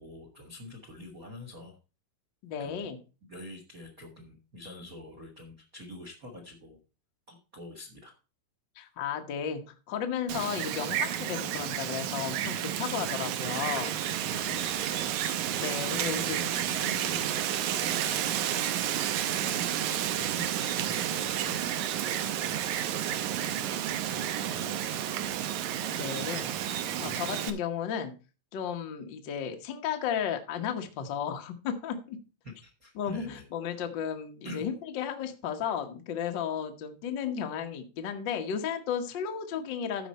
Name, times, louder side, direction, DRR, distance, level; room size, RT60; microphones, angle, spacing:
voice 1, 0.0-1.8 2.6-2.9 3.3-6.8 7.3-8.2 14.3-15.2 15.6-18.7 19.0-21.7 22.0-23.2 23.5-23.6 24.0-25.4 32.4-33.4 34.4-34.7, left 2 dB, 50° right, 2 dB, 1.0 m, -46 dB
voice 2, 2.4-3.0 8.8-9.6 9.9-14.0 15.5-16.4 25.9-26.5 27.0-28.1 28.5-32.2 33.0-40.1, left 8 dB, 70° left, 5 dB, 1.0 m, -34 dB
Wind, 10.3-27.5, right 11 dB, 75° right, 1.9 m, -31 dB
14.0 x 5.3 x 4.2 m, 0.33 s
omnidirectional pair, 4.0 m